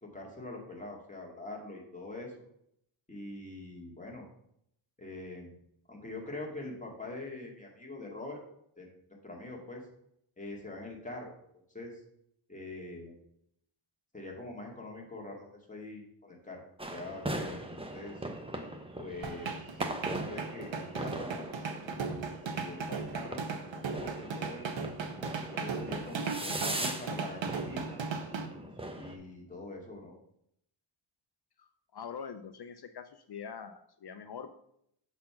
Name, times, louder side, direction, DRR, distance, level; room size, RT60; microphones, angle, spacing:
voice 1, 0.0-2.3 3.1-4.3 5.0-5.6 5.9-8.4 8.8-8.9 9.2-9.8 10.4-11.3 11.7-11.9 12.5-13.1 14.1-16.6 16.9-18.1 19.0-21.5 21.9-22.2 22.5-24.8 25.5-28.0 29.0-30.1, left 2 dB, 15° left, -1 dB, 2.0 m, -44 dB
sound 1, 16.8-29.2, right 1 dB, 10° right, 0.9 m, -40 dB
sound 2, 19.2-28.5, right 5 dB, 65° right, 0.9 m, -37 dB
voice 2, 31.6-34.5, left 6 dB, 55° left, 8 dB, 0.6 m, -44 dB
7.6 x 4.2 x 5.7 m, 0.74 s
wide cardioid pair, 110°, 48 cm